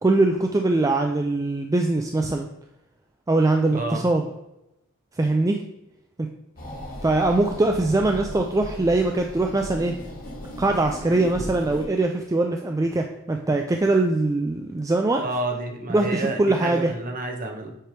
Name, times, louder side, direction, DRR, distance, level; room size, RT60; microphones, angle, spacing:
voice 1, 0.0-2.5 3.3-4.3 5.2-5.6 6.2-6.3 7.0-9.9 10.6-15.2 15.9-16.9, right 2 dB, 15° right, 3 dB, 0.3 m, -22 dB
voice 2, 3.7-4.0 15.2-17.7, right 2 dB, 40° right, 2 dB, 1.0 m, -30 dB
sound 1, 6.6-11.9, equal, 40° left, 1.5 m, -37 dB
7.7 x 3.3 x 4.6 m, 0.86 s
head